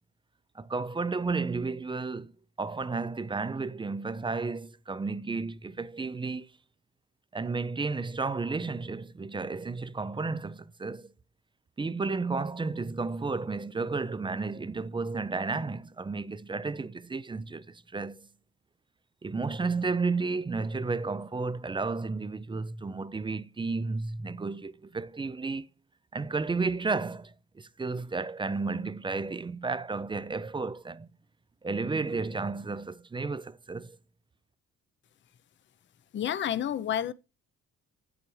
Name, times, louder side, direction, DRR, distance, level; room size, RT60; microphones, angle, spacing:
voice 1, 0.6-2.3 2.6-6.5 7.3-11.1 11.8-18.3 19.2-25.7 26.1-31.1 31.6-34.0, right 4 dB, 15° right, 0.4 m, -32 dB
voice 2, 36.1-37.1, left 10 dB, 40° left, 0.5 m, -29 dB
8.4 x 7.0 x 3.1 m
cardioid pair, 90°, 30 cm